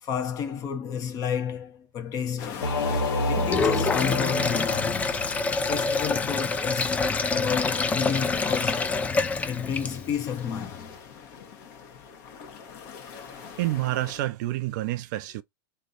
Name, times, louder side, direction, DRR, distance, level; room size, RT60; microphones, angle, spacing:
voice 1, 0.0-2.7 3.3-7.0 7.3-9.0 9.4-11.0, left 7 dB, 30° left, 0.9 m, -31 dB
sound 1, 2.4-14.2, left 6 dB, 45° left, 1.2 m, -42 dB
Singing / Musical instrument, 2.6-5.5, left 2 dB, 90° left, 1.6 m, -29 dB
Sink (filling or washing), 3.4-10.2, left 4 dB, 10° left, 0.4 m, -26 dB
voice 2, 13.3-15.4, right 16 dB, 55° right, 0.5 m, -29 dB
3.2 x 2.7 x 3.9 m
hypercardioid pair, 135°, 12 cm